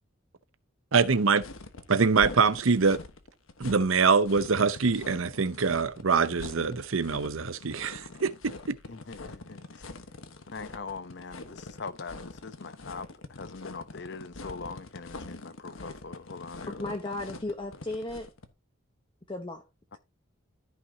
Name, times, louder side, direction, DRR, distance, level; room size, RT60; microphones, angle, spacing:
voice 1, 0.9-1.4 1.9-3.0 3.6-8.8, right 5 dB, 75° right, 0.8 m, -24 dB
sound 1, 1.4-18.5, left 3 dB, 75° left, 1.3 m, -44 dB
voice 2, 8.9-9.8 10.5-16.9 19.9-20.0, left 4 dB, 55° left, 0.8 m, -42 dB
voice 3, 16.7-18.3 19.3-19.6, left 2 dB, 25° left, 1.0 m, -35 dB
14.0 x 5.8 x 2.8 m
head